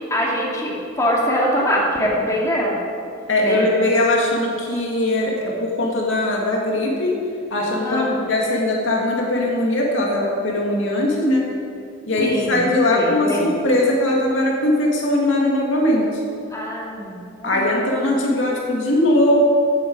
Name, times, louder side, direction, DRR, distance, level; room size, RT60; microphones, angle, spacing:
voice 1, 0.1-2.8 3.4-3.7 7.8-8.2 12.2-12.7 12.9-13.5 16.5-17.7, equal, 15° left, -4 dB, 2.4 m, -23 dB
voice 2, 3.3-7.2 7.5-11.5 12.1-16.2 17.4-19.4, left 1 dB, 80° left, -2 dB, 2.2 m, -20 dB
14.5 x 9.2 x 4.7 m, 2.5 s
head